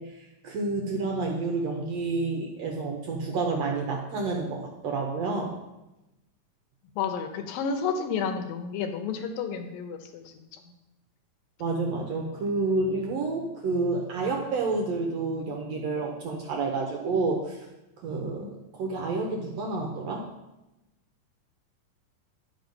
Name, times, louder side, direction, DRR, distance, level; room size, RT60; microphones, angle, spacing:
voice 1, 0.0-5.5 11.6-17.7 18.0-20.2, right 3 dB, 65° right, 1 dB, 1.7 m, -29 dB
voice 2, 0.9-1.3 7.0-10.2 18.4-18.5, left 6 dB, 85° left, 6 dB, 2.7 m, -31 dB
10.5 x 5.6 x 5.3 m, 0.96 s
omnidirectional pair, 4.0 m